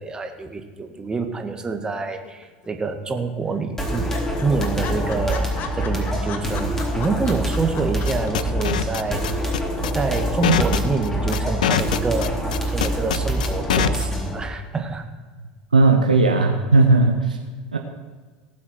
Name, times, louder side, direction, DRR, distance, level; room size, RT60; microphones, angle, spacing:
voice 1, 0.0-4.1 4.4-9.4 9.9-15.0, right 3 dB, 20° right, 5 dB, 1.9 m, -27 dB
sound 1, 2.2-2.9 3.2-3.3 3.5-3.6 3.9-8.3 8.6-8.7, left 7 dB, 45° left, 1.9 m, -36 dB
sound 2, 3.8-14.4, right 1 dB, 10° left, 3.6 m, -25 dB
sound 3, 8.0-14.1, left 9 dB, 75° left, 0.6 m, -23 dB
voice 2, 15.7-17.4 17.7-17.8, right 3 dB, 90° right, 3 dB, 1.0 m, -16 dB
18.5 x 7.5 x 6.0 m, 1.5 s
figure-of-eight pair, 75°, 4 cm